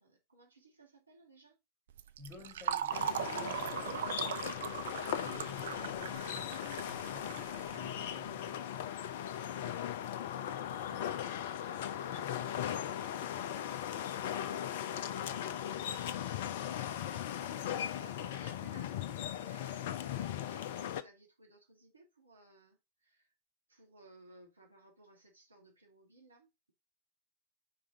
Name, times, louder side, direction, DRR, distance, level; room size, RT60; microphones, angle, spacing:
voice 1, 0.0-1.6 2.4-2.5 3.4-3.5 7.6-7.8 9.1-9.8 10.5-11.2 11.6-14.5 17.6-23.3 23.7-26.7, right 2 dB, 80° right, 1.9 m, -60 dB
Fill (with liquid), 1.9-8.3, right 9 dB, 60° right, 0.5 m, -39 dB
voice 2, 2.2-8.6 10.8-11.0 17.4-17.7, equal, 25° left, 2.0 m, -54 dB
sound 1, 2.9-21.0, left 10 dB, 55° left, 0.6 m, -38 dB
5.0 x 5.0 x 3.7 m
figure-of-eight pair, 90°, 0 cm